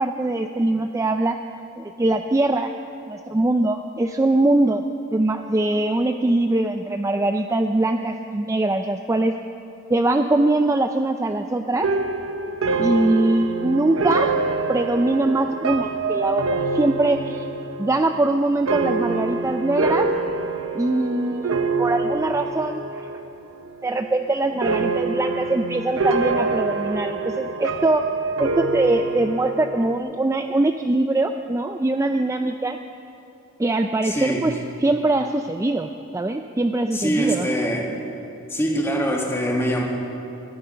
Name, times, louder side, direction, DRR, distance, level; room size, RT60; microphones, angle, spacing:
voice 1, 0.0-1.4 1.8-2.7 3.1-4.8 5.1-9.3 9.9-11.9 12.8-14.3 14.7-17.5 17.8-20.1 20.7-23.1 23.8-28.1 28.4-32.8 33.6-37.5, right 2 dB, 15° right, 7 dB, 0.3 m, -22 dB
sound 1, 11.8-23.3 23.6-24.2 24.6-30.0, right 3 dB, 70° right, 0.8 m, -26 dB
voice 2, 34.0-34.5 36.9-37.9 38.5-39.8, equal, 10° left, -1 dB, 2.0 m, -23 dB
22.5 x 10.5 x 5.7 m, 2.9 s
head